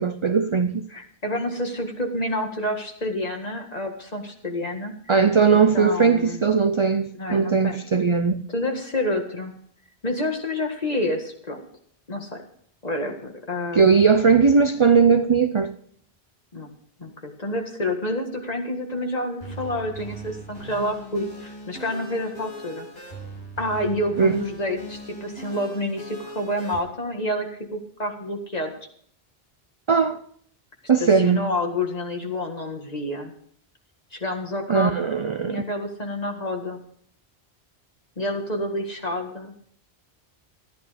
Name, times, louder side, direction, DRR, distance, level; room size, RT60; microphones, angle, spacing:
voice 1, 0.0-0.9 5.1-8.4 13.7-15.7 24.2-24.4 29.9-30.2 30.9-31.4 34.7-35.6, right 5 dB, 40° right, 0.5 m, -19 dB
voice 2, 0.9-4.9 5.5-6.4 7.2-7.8 8.5-9.5 10.0-11.6 12.1-12.4 12.8-14.0 16.5-16.7 17.0-22.9 23.6-28.7 31.0-33.3 34.1-34.9 35.5-36.8 38.2-39.5, left 1 dB, 40° left, 1.9 m, -28 dB
sound 1, 19.4-26.8, equal, 70° left, 6.5 m, -39 dB
14.0 x 10.5 x 5.0 m
omnidirectional pair, 1.1 m